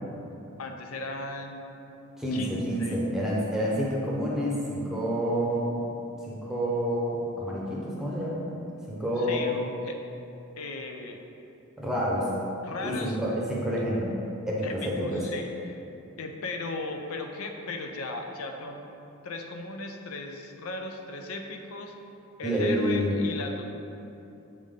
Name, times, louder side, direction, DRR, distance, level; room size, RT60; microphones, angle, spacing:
voice 1, 0.6-1.8 2.3-3.0 9.2-10.0 10.6-11.2 12.6-13.2 14.6-15.8 16.2-18.8 19.2-22.0 22.4-23.6, left 3 dB, 85° left, 3 dB, 0.5 m, -37 dB
voice 2, 2.2-5.8 6.2-8.5 8.9-9.5 11.8-12.3 12.8-14.1 14.5-15.3 22.4-23.2, equal, ahead, -6 dB, 0.8 m, -28 dB
7.5 x 3.6 x 3.6 m, 2.9 s
head